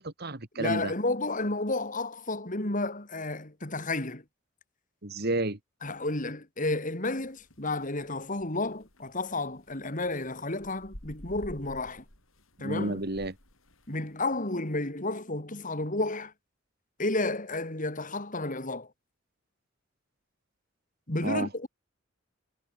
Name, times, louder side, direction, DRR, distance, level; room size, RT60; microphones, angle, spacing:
voice 1, 0.0-0.9 5.0-5.6 12.6-13.3 21.2-21.5, right 2 dB, 50° right, 2.3 m, -31 dB
voice 2, 0.6-4.2 5.8-12.0 12.6-13.0 13.9-16.3 17.0-18.9 21.1-21.7, left 2 dB, 40° left, 3.6 m, -31 dB
sound 1, 7.1-14.3, equal, 85° left, 7.8 m, -51 dB
head